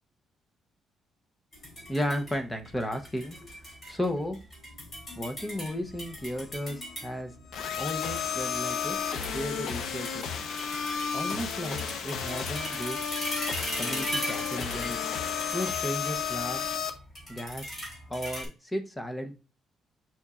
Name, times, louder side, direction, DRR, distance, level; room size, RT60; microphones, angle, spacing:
sound 1, 1.5-18.5, equal, 30° left, 3.1 m, -40 dB
voice 1, 1.9-3.4 3.9-4.4 5.2-7.3 7.8-10.4 11.1-13.0 13.8-15.0 15.5-16.6 17.3-17.8 18.1-19.3, equal, 10° left, 5 dB, 0.7 m, -34 dB
sound 2, 7.5-16.9, left 6 dB, 70° left, 0.8 m, -32 dB
6.9 x 5.9 x 2.4 m, 0.32 s
cardioid pair, 170°, 0 cm